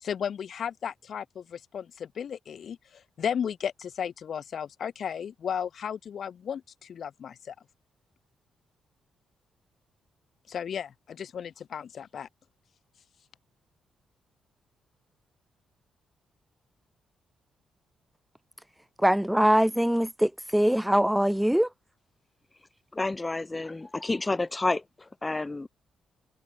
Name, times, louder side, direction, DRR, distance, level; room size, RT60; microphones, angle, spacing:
voice 1, 0.0-7.5 10.5-12.3, left 8 dB, 65° left, 0.7 m, -34 dB
voice 2, 19.0-21.7, equal, 5° right, 0.6 m, -23 dB
voice 3, 22.9-25.7, left 2 dB, 25° left, 0.9 m, -30 dB
supercardioid pair, 60°, 0 cm